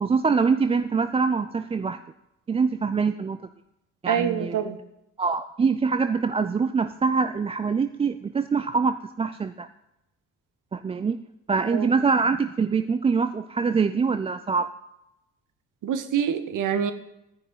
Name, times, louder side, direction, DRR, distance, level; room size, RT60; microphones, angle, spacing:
voice 1, 0.0-2.0 2.5-3.4 4.0-4.6 5.2-9.7 10.7-11.2 11.5-14.7, right 5 dB, 15° right, 11 dB, 0.4 m, -24 dB
voice 2, 4.1-4.8 11.7-11.8 15.8-16.9, right 8 dB, 45° right, 10 dB, 1.3 m, -25 dB
14.0 x 9.9 x 5.4 m, 0.88 s
figure-of-eight pair, 45°, 41 cm